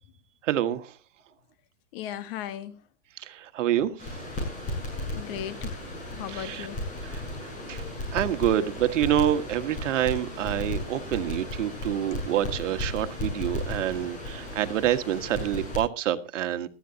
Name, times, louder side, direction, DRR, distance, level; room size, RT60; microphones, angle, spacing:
voice 1, 0.4-0.9 3.2-4.1 6.3-6.7 7.1-7.2 7.7-7.8 8.1-16.7, right 11 dB, 75° right, 1.6 m, -27 dB
voice 2, 1.9-2.8 5.1-5.9 6.1-7.1, left 11 dB, 50° left, 1.6 m, -37 dB
Crackle, 4.0-15.8, left 1 dB, 20° left, 7.6 m, -35 dB
19.0 x 14.0 x 2.8 m
supercardioid pair, 145°, 37 cm